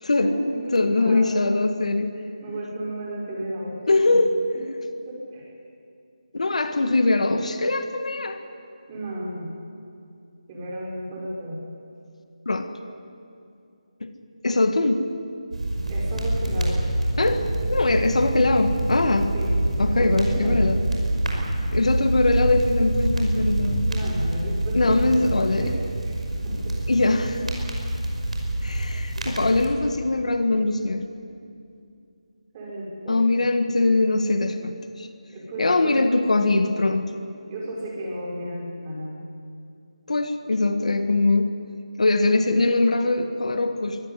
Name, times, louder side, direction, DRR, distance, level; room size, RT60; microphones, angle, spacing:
voice 1, 0.1-1.4 2.4-4.1 5.1-5.4 8.9-9.6 10.5-11.6 15.9-16.8 19.3-20.5 23.9-25.3 25.6-25.7 26.0-26.1 26.4-26.8 32.5-33.2 35.3-36.0 37.5-39.1, right 1 dB, 20° right, -4 dB, 5.8 m, -33 dB
voice 2, 0.7-2.1 3.9-4.3 6.3-8.4 12.5-12.7 14.0-14.1 14.4-15.1 17.2-19.3 19.8-20.8 21.7-23.9 24.7-25.7 26.9-27.5 28.6-31.0 33.1-35.1 35.6-37.1 40.1-41.5 42.0-44.0, left 2 dB, 70° left, 8 dB, 1.8 m, -22 dB
sound 1, 15.5-29.7, right 1 dB, 65° right, 5.5 m, -26 dB
23.5 x 14.5 x 9.9 m, 2.5 s
figure-of-eight pair, 165°, 4 cm